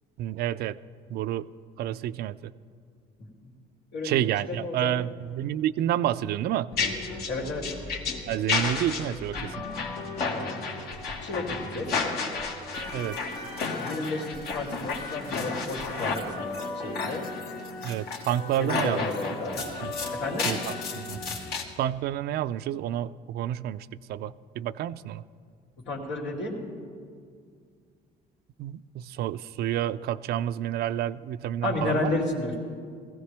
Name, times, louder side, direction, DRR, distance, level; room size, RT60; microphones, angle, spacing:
voice 1, 0.2-0.8 1.1-1.5 1.8-2.5 4.0-6.7 8.3-9.5 12.9-13.2 17.8-19.4 19.8-19.9 20.4-21.2 21.8-25.2 28.6-32.1, right 12 dB, 70° right, 15 dB, 0.4 m, -29 dB
voice 2, 3.9-4.9 7.3-7.7 10.3-10.7 11.2-11.9 13.8-17.2 18.6-19.6 20.1-20.5 25.9-26.6 31.6-32.6, left 2 dB, 90° left, -2 dB, 2.8 m, -32 dB
sound 1, 6.7-21.6, left 4 dB, 70° left, 1.8 m, -32 dB
19.5 x 15.5 x 3.4 m, 2.1 s
cardioid pair, 110°, 17 cm